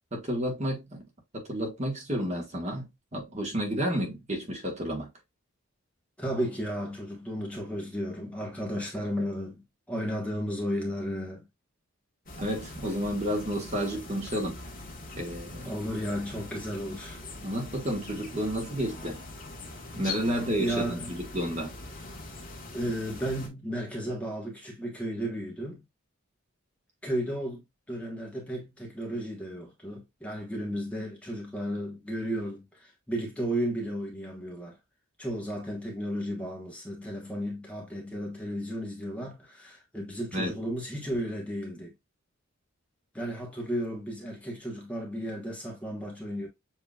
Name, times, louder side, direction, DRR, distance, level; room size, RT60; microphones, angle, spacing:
voice 1, 0.1-1.0 1.3-5.1 12.4-14.6 15.1-15.7 17.4-19.2 19.9-21.7 40.3-40.5, equal, 30° right, 1.4 m, -31 dB
voice 2, 6.2-9.6 9.9-11.4 15.6-17.2 20.3-21.1 22.7-25.8 27.0-27.6 27.9-34.8 35.2-41.9 43.1-46.5, equal, 5° left, 1.2 m, -34 dB
sound 1, 12.3-23.5, left 2 dB, 40° left, 1.5 m, -42 dB
7.3 x 3.0 x 2.4 m
head